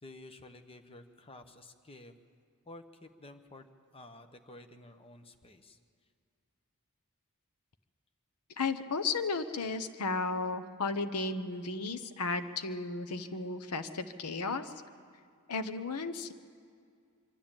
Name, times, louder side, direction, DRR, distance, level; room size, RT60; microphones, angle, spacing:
voice 1, 0.0-2.1 2.6-5.8, left 2 dB, 25° left, 7 dB, 0.9 m, -52 dB
voice 2, 8.6-14.7 15.5-16.3, left 3 dB, 85° left, 11 dB, 0.9 m, -34 dB
24.5 x 12.5 x 8.9 m, 2.2 s
head